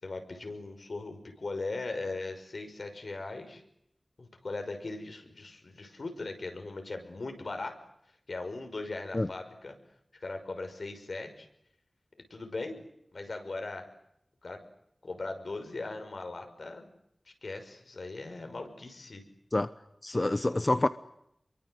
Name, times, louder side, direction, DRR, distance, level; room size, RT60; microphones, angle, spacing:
voice 1, 0.0-3.6 4.2-7.7 8.3-9.8 10.1-11.5 12.3-12.8 13.1-13.8 14.4-14.6 15.0-16.9 17.3-19.2, left 3 dB, 85° left, 6 dB, 5.9 m, -39 dB
voice 2, 20.0-20.9, left 2 dB, 40° left, 12 dB, 1.0 m, -27 dB
29.5 x 23.5 x 8.0 m, 0.76 s
wide cardioid pair, 65°, 0 cm